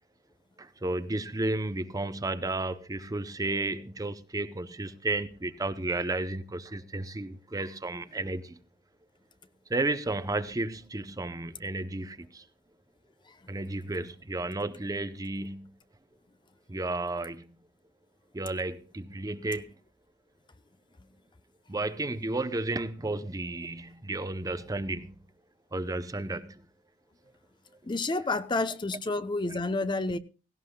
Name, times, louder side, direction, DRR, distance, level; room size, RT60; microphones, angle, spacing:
voice 1, 0.6-8.6 9.7-12.4 13.5-15.7 16.7-17.6 18.3-19.7 21.7-25.2 25.7-26.7 29.5-29.6, right 2 dB, 20° right, 0.6 m, -33 dB
voice 2, 27.8-30.2, left 3 dB, 25° left, 0.6 m, -29 dB
17.5 x 17.0 x 2.2 m
head